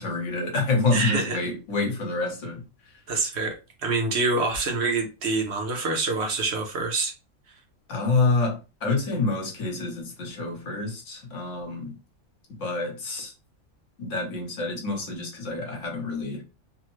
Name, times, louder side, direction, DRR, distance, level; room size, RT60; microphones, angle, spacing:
voice 1, 0.0-2.6 7.9-11.9 12.6-13.3 14.0-16.4, left 3 dB, 70° left, 1.2 m, -27 dB
voice 2, 0.9-1.4 3.1-3.5 3.8-7.1, right 3 dB, 60° right, 0.9 m, -26 dB
3.2 x 2.1 x 3.0 m
omnidirectional pair, 1.3 m